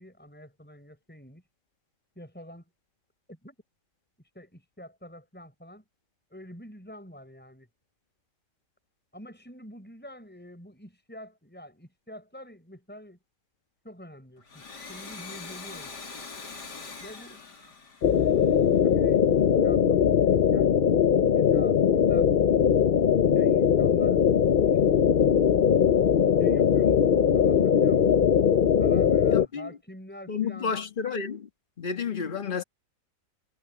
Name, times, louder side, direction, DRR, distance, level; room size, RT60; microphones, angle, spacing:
voice 1, 0.0-1.4 2.2-2.7 3.3-3.5 4.3-5.8 6.3-7.7 9.1-13.2 13.8-14.6 14.9-15.9 17.0-17.4 18.2-20.7 21.3-22.3 23.3-24.2 24.7-25.0 26.4-27.1 27.3-28.2 28.8-30.7, equal, 5° left, 6.2 m, -46 dB
Domestic sounds home sounds, 14.4-18.9, left 4 dB, 80° left, 3.5 m, -43 dB
sound 1, 18.0-29.5, left 8 dB, 65° left, 0.5 m, -21 dB
voice 2, 29.3-29.7 30.3-31.5 31.8-32.6, left 6 dB, 30° left, 1.5 m, -31 dB
omnidirectional pair, 1.8 m